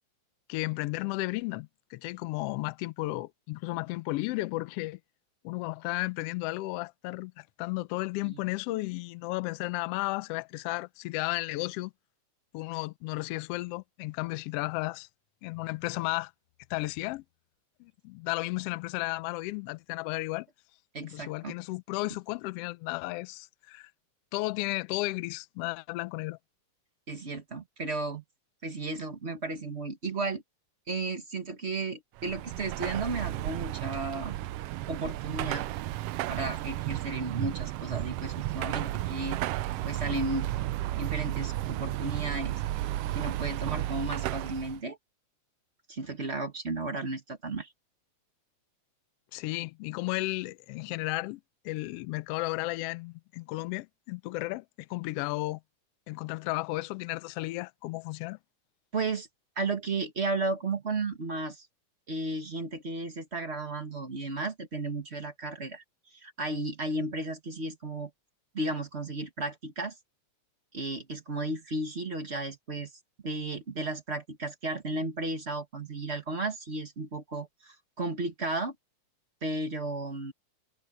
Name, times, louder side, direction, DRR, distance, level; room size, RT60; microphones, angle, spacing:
voice 1, 0.5-5.0 5.4-11.9 12.5-15.1 15.4-16.3 16.7-17.2 17.8-20.5 21.0-23.9 24.3-26.4 49.3-51.4 51.6-55.6 56.1-58.4, left 21 dB, 85° left, 1.4 m, -34 dB
voice 2, 20.9-21.5 27.1-28.2 28.6-30.4 30.9-34.3 34.9-35.7 36.3-39.4 39.8-40.5 41.0-42.6 43.1-45.0 45.9-47.7 58.9-59.3 59.6-61.7 62.1-65.8 66.1-68.1 68.5-69.9 70.7-72.9 73.2-78.7 79.4-80.3, right 2 dB, 30° right, 1.3 m, -34 dB
Car passing by / Traffic noise roadway noise / Engine, 32.2-44.8, right 15 dB, 85° right, 1.3 m, -33 dB
omnidirectional pair, 3.3 m